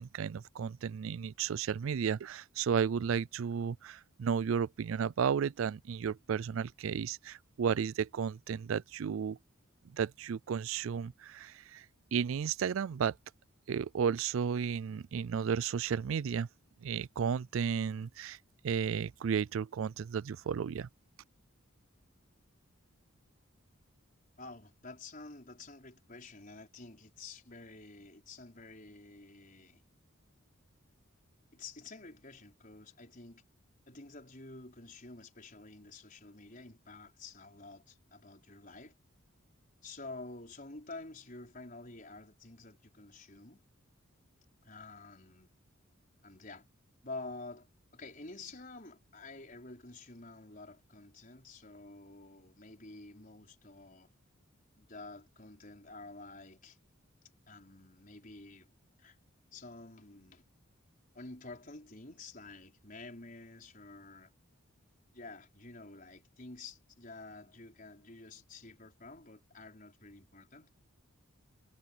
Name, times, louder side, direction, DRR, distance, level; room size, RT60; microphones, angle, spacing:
voice 1, 0.0-9.4 9.8-11.9 12.1-13.2 13.7-16.5 16.8-18.4 18.6-20.9, right 7 dB, 70° right, 0.4 m, -33 dB
voice 2, 24.4-29.8 31.5-33.4 33.9-39.0 39.8-43.6 44.6-45.5 46.2-46.7 47.0-47.7 47.9-54.1 54.8-56.8 57.5-58.7 59.0-59.2 59.5-60.5 61.1-64.3 65.1-70.7, left 3 dB, 40° left, 5.2 m, -49 dB
head